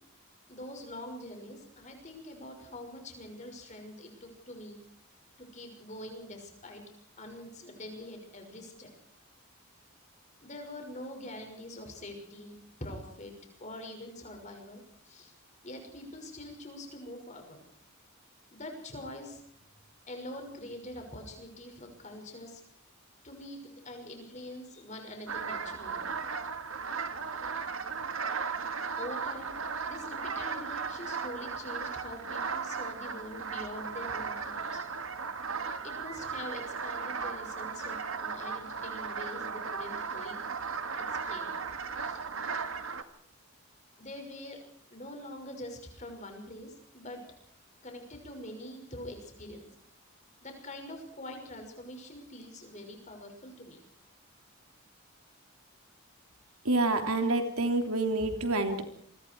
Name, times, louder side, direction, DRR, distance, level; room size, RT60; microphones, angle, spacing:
voice 1, 0.5-4.8 5.4-6.8 7.2-8.9 10.4-13.3 13.6-15.3 15.6-17.6 18.5-19.4 20.1-22.6 23.2-26.0 29.0-29.6 29.9-34.8 35.8-40.4 41.0-41.5 42.0-42.2 44.0-44.6 44.9-47.2 47.8-49.7 50.4-53.8, left 1 dB, 35° left, 4 dB, 6.1 m, -44 dB
sound 1, 25.3-43.0, right 5 dB, 70° right, 1.9 m, -36 dB
voice 2, 56.6-58.8, right 2 dB, 85° right, 5 dB, 3.3 m, -27 dB
28.0 x 23.5 x 4.8 m, 0.64 s
head